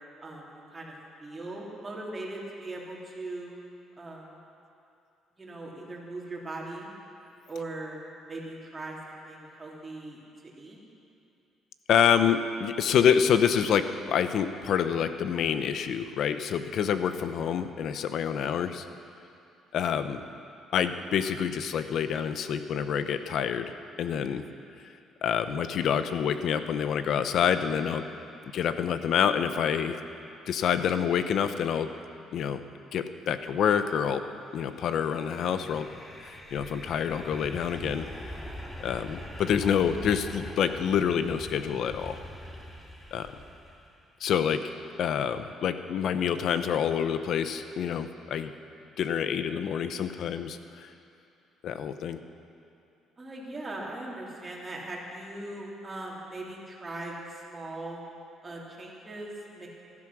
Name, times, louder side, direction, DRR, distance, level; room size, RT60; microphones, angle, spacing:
voice 1, 0.2-0.9 1.2-3.5 4.0-4.3 5.4-6.9 7.5-8.0 8.3-10.2 10.5-10.8 44.9-45.1 53.2-58.0 58.4-59.7, right 2 dB, 20° right, -4 dB, 3.4 m, -39 dB
voice 2, 11.9-18.9 19.7-20.2 20.7-24.4 25.2-28.0 28.5-30.0 30.5-31.9 32.3-32.6 32.9-34.2 34.5-35.9 36.2-38.3 38.8-42.2 43.1-43.3 44.2-44.7 45.0-48.5 49.0-50.9 51.6-52.2, left 8 dB, 60° left, 10 dB, 0.8 m, -27 dB
sound 1, 34.7-43.9, equal, 15° left, 2.5 m, -43 dB
15.5 x 13.5 x 6.3 m, 2.6 s
cardioid pair, 115°, 0 cm